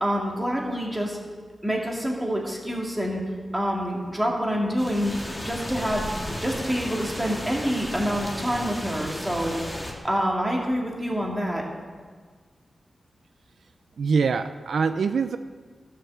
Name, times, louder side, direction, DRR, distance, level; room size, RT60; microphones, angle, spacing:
voice 1, 0.0-1.2 1.6-3.2 3.5-5.1 5.4-6.1 6.4-9.6 10.0-11.6, equal, 10° right, -1 dB, 2.0 m, -27 dB
sound 1, 4.8-9.9, left 1 dB, 10° left, 1.6 m, -34 dB
voice 2, 14.0-15.4, right 5 dB, 70° right, 10 dB, 0.4 m, -24 dB
14.0 x 7.3 x 7.1 m, 1.5 s
wide cardioid pair, 180°, 0 cm